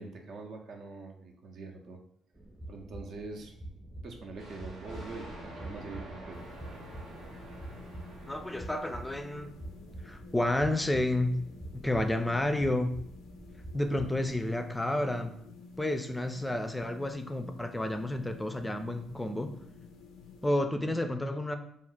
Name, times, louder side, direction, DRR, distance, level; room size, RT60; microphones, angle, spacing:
voice 1, 0.0-2.0 2.7-3.5 4.0-6.4 20.7-21.1, right 3 dB, 65° right, 2 dB, 0.5 m, -44 dB
sound 1, 2.3-14.6, right 1 dB, 25° right, 0.7 m, -47 dB
Thunder, 4.3-9.7, right 1 dB, 85° right, 0.9 m, -47 dB
sound 2, 6.3-20.5, left 3 dB, 80° left, 0.4 m, -51 dB
voice 2, 8.2-9.5 10.0-11.4 11.7-13.0 13.7-15.3 15.8-19.5 20.4-21.6, left 1 dB, 10° left, 7 dB, 0.4 m, -30 dB
2.4 x 2.0 x 3.7 m, 0.70 s
hypercardioid pair, 50°, 0 cm